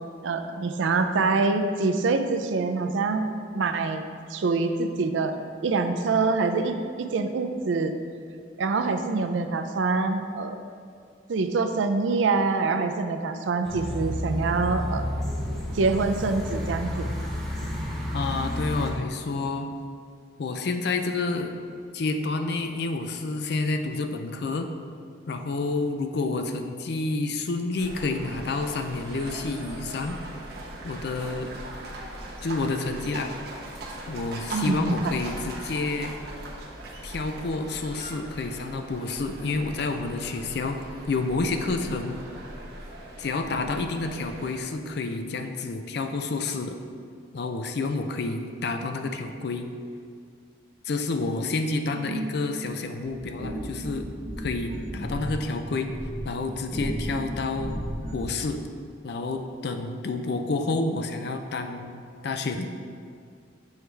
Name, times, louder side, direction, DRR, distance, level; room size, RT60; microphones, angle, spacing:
voice 1, 0.2-5.4 5.6-7.9 8.6-10.6 11.3-15.1 15.7-17.1 34.5-35.1 51.9-52.5, right 3 dB, 80° right, 7 dB, 0.4 m, -25 dB
sound 1, 13.6-18.9, left 1 dB, ahead, 0.7 m, -31 dB
voice 2, 18.1-19.7 20.4-21.6 21.9-24.7 25.3-30.2 30.8-31.5 32.4-33.3 34.1-36.2 37.0-40.8 41.1-42.2 43.2-46.8 47.3-49.7 50.8-54.1 54.4-55.9 56.2-57.8 58.1-58.6 59.0-62.7, left 3 dB, 60° left, 6 dB, 0.4 m, -29 dB
sound 2, 27.8-44.6, right 1 dB, 55° right, 0.9 m, -40 dB
sound 3, 53.0-58.4, equal, 30° right, 1.1 m, -34 dB
7.1 x 4.6 x 3.3 m, 2.3 s
head